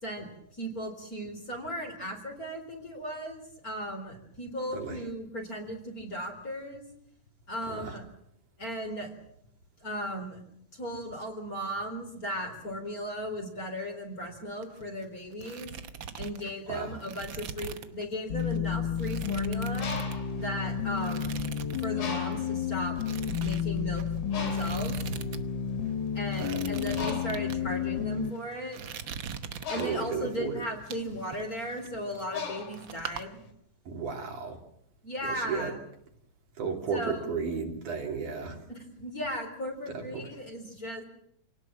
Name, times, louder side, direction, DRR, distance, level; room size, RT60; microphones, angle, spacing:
voice 1, 0.0-6.8 7.5-8.0 8.6-9.1 9.8-10.4 10.7-15.7 16.2-19.9 20.3-21.3 21.8-22.9 23.4-24.0 24.4-25.0 26.1-28.8 29.7-33.4 35.0-35.8 36.9-37.3 38.7-41.0, equal, 25° left, 2 dB, 4.2 m, -36 dB
sound 1, 14.5-15.0 15.3-18.0 18.4-18.6 19.0-20.6 21.0-21.9 22.2-22.4 23.0-25.4 25.7-25.8 26.3-27.6 28.2-28.4 28.7-30.2 30.6-32.5 32.7-33.2, right 7 dB, 90° right, 1.0 m, -41 dB
sound 2, 18.3-28.3, left 8 dB, 70° left, 1.0 m, -31 dB
Bird, 19.6-21.4 22.0-22.7 23.3-23.5 23.7-33.5, left 5 dB, 90° left, 4.8 m, -40 dB
voice 2, 26.4-26.7 29.7-30.6 33.9-34.6 35.2-35.7 36.6-38.6 39.9-40.3, right 5 dB, 65° right, 2 dB, 4.3 m, -34 dB
27.5 x 18.5 x 7.5 m, 0.72 s
omnidirectional pair, 3.9 m